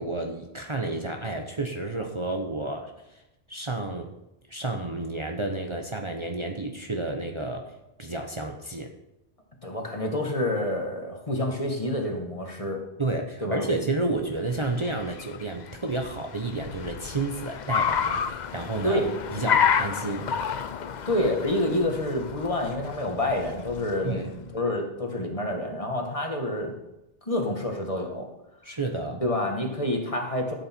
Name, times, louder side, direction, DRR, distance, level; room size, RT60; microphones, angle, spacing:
voice 1, 0.0-2.9 3.5-4.1 4.5-7.7 8.0-8.9 13.0-19.0 19.3-20.3 24.0-24.3 28.6-29.2, right 2 dB, 30° right, 3 dB, 1.0 m, -31 dB
voice 2, 9.6-12.8 13.4-13.7 18.8-19.1 21.1-26.7 27.3-28.3 29.2-30.5, left 1 dB, 35° left, 2 dB, 1.7 m, -28 dB
Car, 14.2-24.4, left 7 dB, 50° left, 0.7 m, -30 dB
13.5 x 8.5 x 4.5 m, 0.90 s
omnidirectional pair, 1.1 m